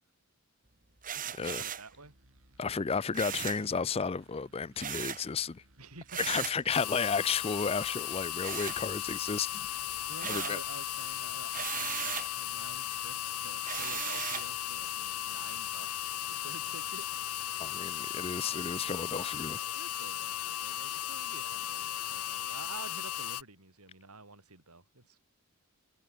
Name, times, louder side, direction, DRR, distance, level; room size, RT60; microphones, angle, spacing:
sound 1, 1.0-1.9 3.1-3.7 4.8-5.3 6.1-6.6 8.4-9.3 9.7-10.7 11.5-12.3 13.6-14.5, right 9 dB, 35° right, 2.2 m, -37 dB
voice 1, 1.1-2.1 5.8-6.5 10.1-17.1 17.4-17.8 18.4-18.9 19.7-25.2, right 3 dB, 85° right, 6.5 m, -50 dB
sound 2, 1.9-19.2, right 1 dB, 65° right, 5.6 m, -63 dB
voice 2, 2.6-5.6 6.2-9.7 10.2-10.6 17.6-19.6, left 5 dB, 25° left, 0.4 m, -33 dB
sound 3, 6.7-23.4, left 12 dB, 85° left, 0.7 m, -36 dB
head